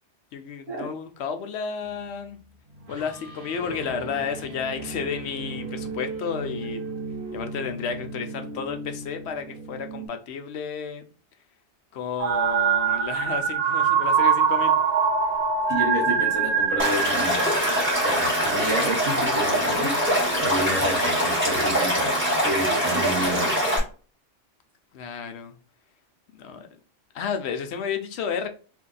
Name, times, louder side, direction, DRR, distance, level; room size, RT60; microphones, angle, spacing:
voice 1, 0.3-2.4 2.9-6.8 7.3-11.0 11.9-14.7 20.5-20.7 24.9-25.5 26.3-26.7 27.1-28.5, left 6 dB, 70° left, 0.8 m, -32 dB
sound 1, 1.8-10.1, right 3 dB, 50° right, 1.0 m, -37 dB
sound 2, 12.2-19.5, right 6 dB, 70° right, 0.4 m, -24 dB
voice 2, 15.7-17.4 18.0-19.9 20.4-23.7, right 1 dB, 85° right, 1.5 m, -30 dB
Stream / Liquid, 16.8-23.8, equal, 10° right, 1.3 m, -23 dB
2.9 x 2.7 x 3.8 m
omnidirectional pair, 1.2 m